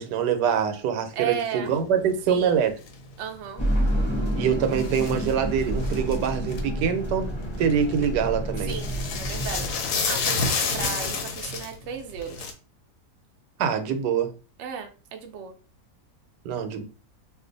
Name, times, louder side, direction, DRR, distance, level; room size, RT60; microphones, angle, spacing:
voice 1, 0.0-2.7 4.3-7.3 7.6-8.7 13.6-14.3 16.4-16.8, right 7 dB, 85° right, 1.2 m, -24 dB
voice 2, 1.1-1.7 2.3-2.6 3.2-3.6 8.6-12.5 14.6-15.5, right 8 dB, 65° right, 0.7 m, -35 dB
sound 1, 1.7-6.6 7.2-8.2 8.5-12.5, left 4 dB, 65° left, 0.8 m, -30 dB
sound 2, 3.6-9.7, equal, 30° left, 0.5 m, -28 dB
2.5 x 2.4 x 3.8 m
omnidirectional pair, 1.8 m